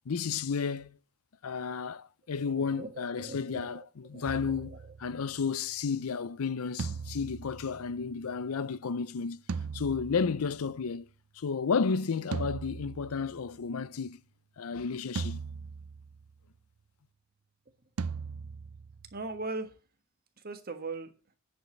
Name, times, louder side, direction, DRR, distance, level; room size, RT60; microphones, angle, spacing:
voice 1, 0.1-1.0 1.4-9.4 9.7-11.1 11.4-14.2 14.6-15.4, left 5 dB, 90° left, 0.6 m, -32 dB
voice 2, 2.3-3.7 4.1-4.8 19.1-19.7 20.4-21.1, right 3 dB, 45° right, 1.4 m, -40 dB
sound 1, 4.3-5.6 6.8-8.5 9.5-10.8 12.3-13.7 15.2-16.3 18.0-19.4, right 5 dB, 85° right, 0.5 m, -39 dB
10.0 x 5.1 x 6.8 m
head